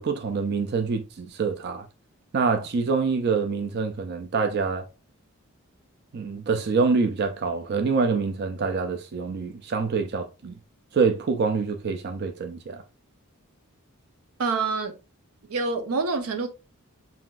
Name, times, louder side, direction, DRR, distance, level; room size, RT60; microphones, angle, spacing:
voice 1, 0.0-1.8 2.3-4.8 6.1-10.5 10.9-12.8, right 4 dB, 50° right, 0.4 m, -26 dB
voice 2, 14.4-15.0 15.5-16.5, right 4 dB, 85° right, 0.7 m, -26 dB
5.6 x 2.5 x 2.3 m
head